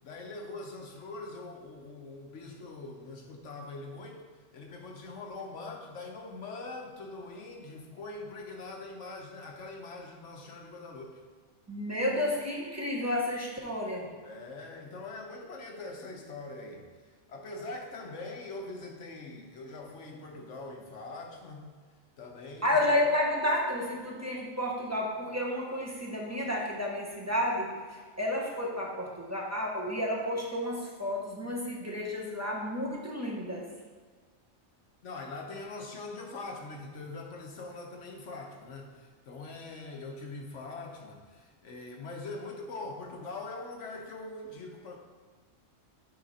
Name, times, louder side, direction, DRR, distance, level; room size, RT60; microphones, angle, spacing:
voice 1, 0.0-4.2 4.5-11.2 14.2-16.9 17.3-21.6 22.2-22.8 35.0-45.0, left 3 dB, 65° left, 1 dB, 1.2 m, -42 dB
voice 2, 11.7-14.1 22.6-33.6, left 1 dB, 15° right, -3 dB, 0.9 m, -31 dB
9.2 x 3.7 x 4.1 m, 1.5 s
omnidirectional pair, 1.4 m